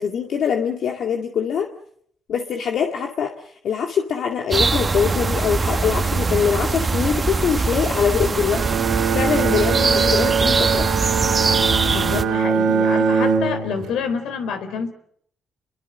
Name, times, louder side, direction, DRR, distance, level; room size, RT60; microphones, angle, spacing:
voice 1, 0.0-1.7 2.3-8.6 8.9-10.9, left 7 dB, 65° left, 3 dB, 2.2 m, -23 dB
sound 1, 4.5-12.2, right 4 dB, 30° right, 1.7 m, -22 dB
Bowed string instrument, 8.5-14.0, right 6 dB, 80° right, 3.4 m, -21 dB
voice 2, 11.9-14.9, left 6 dB, 85° left, 8 dB, 4.1 m, -28 dB
29.0 x 22.5 x 6.5 m, 0.66 s
cardioid pair, 90°, 0 cm